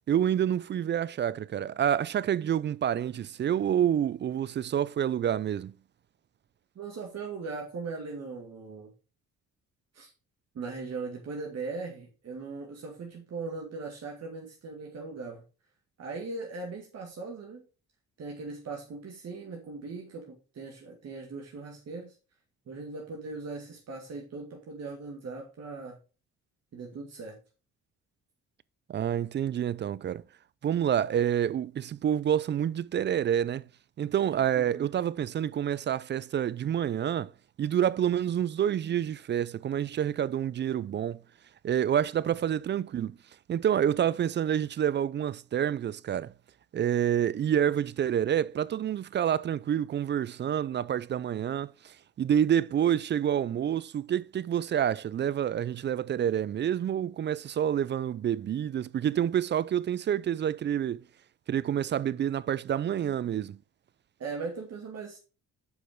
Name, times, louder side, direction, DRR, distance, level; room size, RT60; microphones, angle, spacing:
voice 1, 0.1-5.7 28.9-30.2 30.6-33.7 34.0-37.3 37.6-41.2 41.6-43.2 43.5-46.3 46.7-61.0 61.5-63.6, right 9 dB, 40° right, 0.4 m, -28 dB
voice 2, 6.8-8.9 9.9-10.1 10.5-15.4 16.0-17.6 18.2-22.2 22.7-26.0 26.7-27.4 34.5-35.0 64.2-65.2, right 4 dB, 55° right, 2.0 m, -39 dB
7.9 x 5.3 x 3.6 m
cardioid pair, 90°, 30 cm